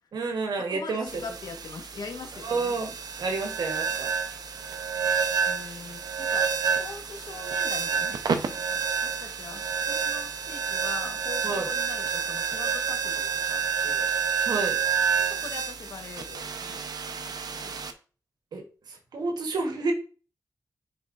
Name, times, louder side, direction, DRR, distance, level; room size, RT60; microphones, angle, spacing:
voice 1, 0.1-1.2 2.4-4.1 11.4-11.7 14.5-14.8 18.5-19.9, right 3 dB, 90° right, 3 dB, 1.1 m, -30 dB
voice 2, 0.7-2.7 5.5-14.1 15.2-16.8 17.1-17.8, left 4 dB, 75° left, 5 dB, 1.2 m, -42 dB
sound 1, 1.1-17.9, right 6 dB, 75° right, 0.7 m, -29 dB
9.5 x 4.2 x 2.5 m, 0.37 s
cardioid pair, 65°, 7 cm